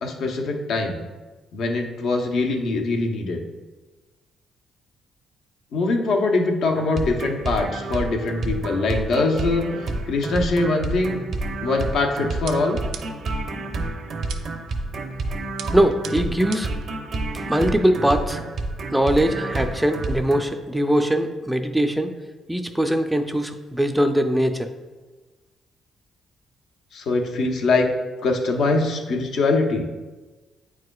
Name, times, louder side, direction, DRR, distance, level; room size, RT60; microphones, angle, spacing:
voice 1, 0.0-1.0 1.5-3.4 5.7-11.2 11.6-12.8 26.9-27.9 28.2-29.9, left 3 dB, 75° left, 2 dB, 0.8 m, -23 dB
sound 1, 6.7-20.4, right 2 dB, 55° right, 0.7 m, -30 dB
sound 2, 12.5-13.4 14.3-14.7 15.6-16.9, right 8 dB, 85° right, 0.4 m, -39 dB
voice 2, 15.7-16.7 17.5-18.4 18.9-22.1 22.5-24.7, right 1 dB, 5° right, 7 dB, 0.4 m, -21 dB
8.7 x 4.8 x 2.3 m, 1.2 s
cardioid pair, 90°, 0 cm